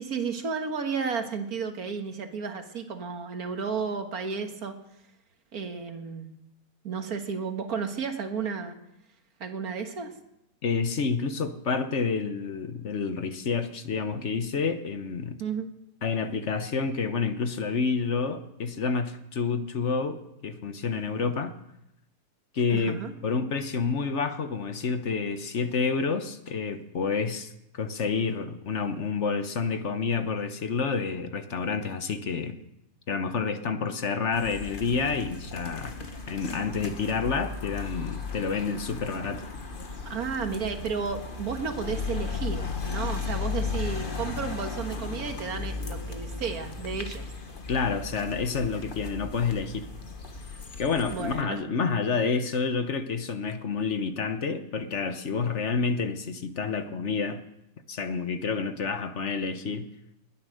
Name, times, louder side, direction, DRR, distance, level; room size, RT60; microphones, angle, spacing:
voice 1, 0.0-4.8 5.5-6.3 6.8-8.7 9.4-10.1 15.4-15.7 22.7-23.1 40.1-47.3 50.5-50.8 51.1-51.6, right 5 dB, 85° right, 6 dB, 2.0 m, -33 dB
voice 2, 10.6-15.4 16.0-21.5 22.5-32.6 33.1-36.0 36.3-39.4 47.7-49.9 50.8-57.5 57.9-59.9, left 5 dB, 55° left, 9 dB, 1.3 m, -29 dB
sound 1, 34.3-51.4, left 4 dB, 35° left, 1.5 m, -36 dB
20.5 x 9.9 x 6.5 m, 0.85 s
omnidirectional pair, 1.5 m